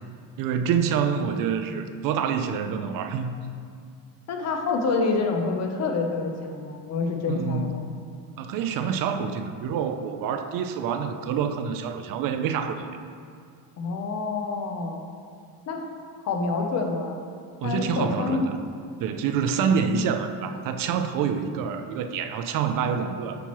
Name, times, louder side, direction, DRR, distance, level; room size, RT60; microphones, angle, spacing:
voice 1, 0.4-3.3 7.3-7.8 8.4-12.9 17.6-18.6 19.0-23.4, right 6 dB, 55° right, 8 dB, 0.5 m, -27 dB
voice 2, 4.3-7.8 13.8-15.0 15.7-15.9 16.2-17.2 17.6-18.5, left 4 dB, 40° left, 3 dB, 0.7 m, -27 dB
8.4 x 5.8 x 3.0 m, 2.3 s
cardioid pair, 165°, 39 cm